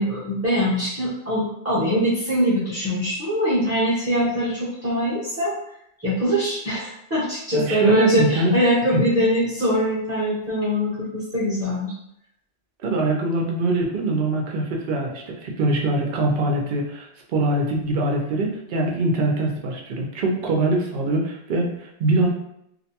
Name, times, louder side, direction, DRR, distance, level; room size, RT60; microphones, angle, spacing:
voice 1, 0.0-5.6 6.0-11.9, equal, 15° right, -9 dB, 0.6 m, -22 dB
voice 2, 7.5-8.5 8.9-9.0 12.8-22.3, right 2 dB, 60° right, 0 dB, 0.6 m, -23 dB
2.5 x 2.1 x 2.8 m, 0.77 s
omnidirectional pair, 1.2 m